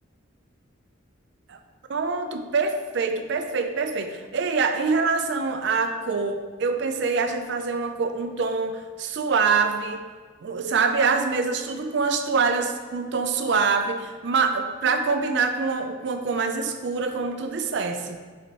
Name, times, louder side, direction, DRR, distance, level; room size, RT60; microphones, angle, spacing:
voice 1, 1.9-10.0 10.4-18.2, right 4 dB, 55° right, 7 dB, 0.4 m, -25 dB
4.4 x 3.9 x 3.0 m, 1.5 s
head